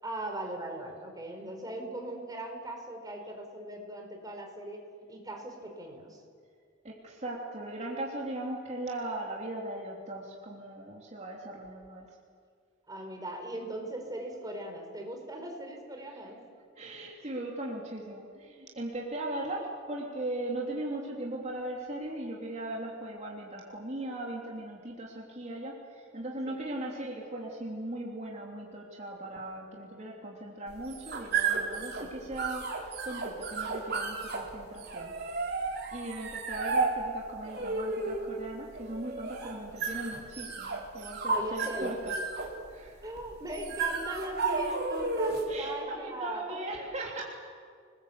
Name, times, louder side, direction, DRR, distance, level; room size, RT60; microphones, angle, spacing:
voice 1, 0.0-4.8 5.1-6.2 12.9-16.4 26.4-26.6 31.9-32.1 39.4-39.7 41.3-42.0 43.0-46.6, right 1 dB, 20° right, 3 dB, 4.6 m, -39 dB
voice 2, 6.8-12.1 16.8-35.1 35.4-35.5 35.9-42.2 42.7-43.1 45.5-47.3, right 1 dB, 35° right, -2 dB, 3.3 m, -38 dB
sound 1, 30.7-45.6, right 4 dB, 55° right, 3.8 m, -33 dB
28.5 x 21.0 x 8.1 m, 2.1 s
head